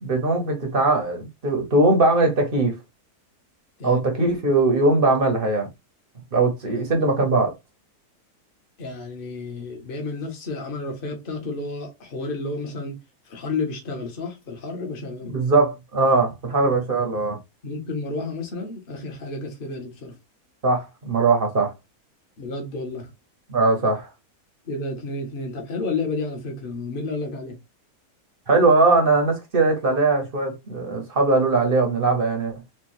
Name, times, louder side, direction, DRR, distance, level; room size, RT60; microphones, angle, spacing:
voice 1, 0.0-2.8 3.8-5.7 6.3-7.5 15.2-17.4 20.6-21.7 23.5-24.1 28.5-32.5, right 3 dB, 40° right, 1.0 m, -20 dB
voice 2, 8.8-15.3 17.6-20.2 22.4-23.1 24.6-27.6, left 3 dB, 35° left, 1.2 m, -31 dB
4.5 x 2.5 x 3.0 m
omnidirectional pair, 1.7 m